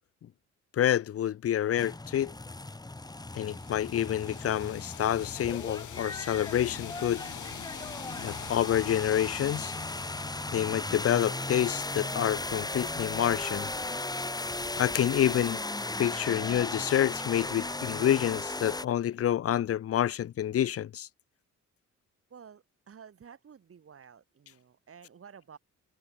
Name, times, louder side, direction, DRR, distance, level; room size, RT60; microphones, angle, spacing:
voice 1, 0.7-2.3 3.3-7.3 8.2-9.7 10.5-13.7 14.8-15.6 16.0-21.1, left 11 dB, 50° left, 0.8 m, -28 dB
sound 1, 1.8-18.9, left 2 dB, 15° left, 1.9 m, -36 dB
sound 2, 3.2-11.9, left 13 dB, 75° left, 3.7 m, -46 dB
voice 2, 22.3-25.6, right 7 dB, 50° right, 7.1 m, -52 dB
cardioid pair, 90°, 30 cm